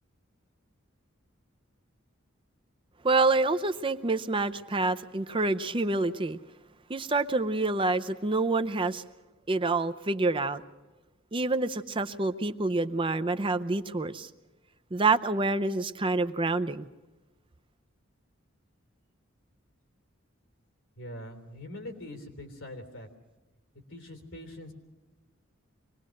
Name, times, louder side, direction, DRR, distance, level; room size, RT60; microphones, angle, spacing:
voice 1, 3.0-6.4 6.9-9.0 9.5-10.6 11.3-14.3 14.9-16.9, right 3 dB, 25° right, 10 dB, 0.6 m, -27 dB
voice 2, 21.0-23.1 23.9-24.7, left 1 dB, 80° left, 6 dB, 3.4 m, -43 dB
25.0 x 19.5 x 6.5 m, 1.1 s
head